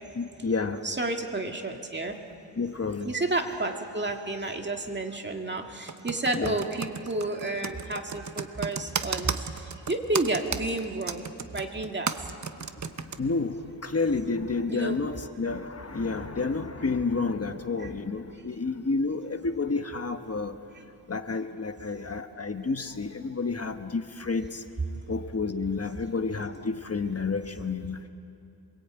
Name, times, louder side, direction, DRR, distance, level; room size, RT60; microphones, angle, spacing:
voice 1, 0.2-0.8 2.6-3.1 6.3-6.6 13.2-20.6 21.1-24.6 25.1-28.1, left 4 dB, 35° left, 7 dB, 1.2 m, -30 dB
voice 2, 0.8-2.2 3.0-12.1 14.7-15.0 17.8-17.9, right 2 dB, 25° right, 3 dB, 2.0 m, -31 dB
Computer keyboard, 5.9-13.2, right 5 dB, 45° right, 1.0 m, -33 dB
27.5 x 22.0 x 8.8 m, 2.6 s
wide cardioid pair, 120°, 41 cm